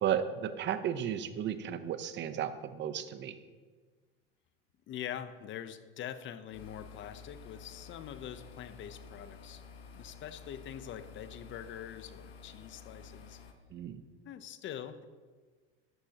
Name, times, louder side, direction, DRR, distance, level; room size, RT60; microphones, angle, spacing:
voice 1, 0.0-3.4 13.7-14.0, right 9 dB, 40° right, 11 dB, 0.9 m, -34 dB
voice 2, 4.9-9.6 9.9-13.4 14.2-15.0, left 10 dB, 40° left, 11 dB, 0.8 m, -44 dB
sound 1, 6.5-13.5, left 5 dB, 90° left, 1.3 m, -51 dB
13.0 x 11.5 x 2.9 m, 1.4 s
supercardioid pair, 115°, 29 cm